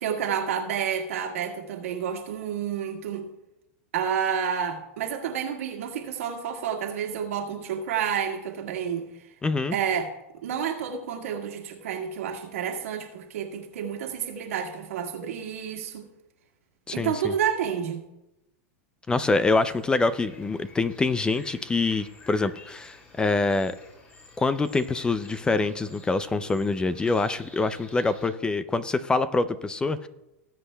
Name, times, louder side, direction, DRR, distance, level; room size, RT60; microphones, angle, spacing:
voice 1, 0.0-3.3 3.9-9.1 9.7-10.1 10.4-16.1 16.9-18.0, right 8 dB, 85° right, 1 dB, 1.8 m, -30 dB
voice 2, 9.4-9.8 16.9-17.3 19.1-23.8 24.4-30.1, left 3 dB, 10° left, 14 dB, 0.4 m, -25 dB
sound 1, 19.4-28.3, left 3 dB, 25° left, 4.3 m, -51 dB
19.0 x 8.0 x 2.3 m, 0.94 s
supercardioid pair, 130°, 7 cm